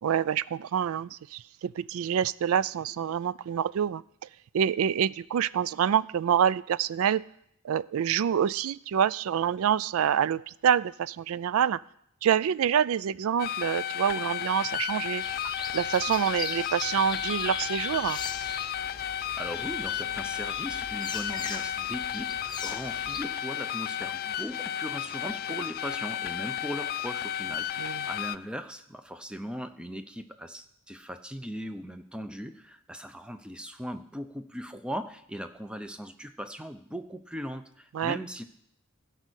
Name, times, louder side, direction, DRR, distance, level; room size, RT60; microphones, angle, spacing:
voice 1, 0.0-4.0 4.5-7.2 7.6-11.8 12.2-18.2 27.8-28.0 37.9-38.2, right 8 dB, 70° right, 20 dB, 0.3 m, -27 dB
sound 1, 13.4-28.4, left 10 dB, 45° left, 0.3 m, -33 dB
sound 2, 15.2-23.2, left 4 dB, 20° left, 0.9 m, -40 dB
voice 2, 19.4-38.4, equal, 5° right, 9 dB, 0.6 m, -39 dB
16.0 x 5.4 x 6.3 m, 0.72 s
head